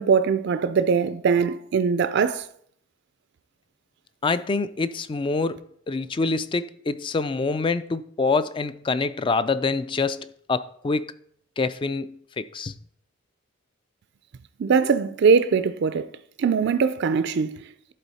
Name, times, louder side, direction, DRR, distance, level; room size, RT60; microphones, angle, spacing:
voice 1, 0.0-2.5 14.6-16.1 16.4-17.9, right 5 dB, 55° right, 0.4 m, -21 dB
voice 2, 4.2-11.1 11.6-12.7, left 3 dB, 25° left, 0.3 m, -26 dB
11.0 x 4.1 x 4.1 m
head